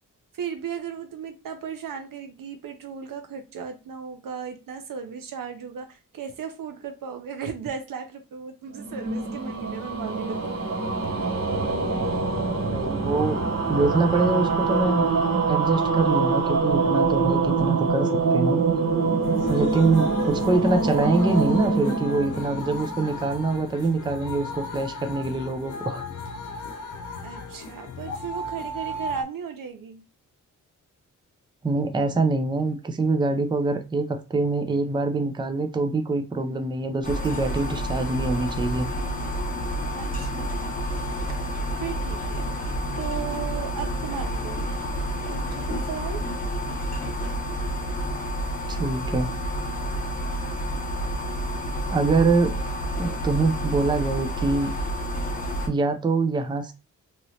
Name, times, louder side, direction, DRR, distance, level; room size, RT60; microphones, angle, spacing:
voice 1, 0.3-10.6 27.2-30.0 39.9-41.4 41.8-42.5 43.0-44.7 45.3-46.2, right 7 dB, 90° right, 0.8 m, -36 dB
sound 1, 8.8-23.2, right 4 dB, 40° right, 1.1 m, -24 dB
voice 2, 12.5-15.1 15.5-18.6 19.5-26.1 31.6-38.9 48.7-49.3 51.9-52.6 53.0-54.7 55.7-56.7, right 3 dB, 15° right, 0.4 m, -24 dB
sound 2, 19.2-29.2, left 2 dB, 65° left, 0.8 m, -36 dB
sound 3, 37.0-55.7, equal, 25° left, 0.9 m, -29 dB
3.0 x 2.9 x 2.7 m
wide cardioid pair, 115°, 32 cm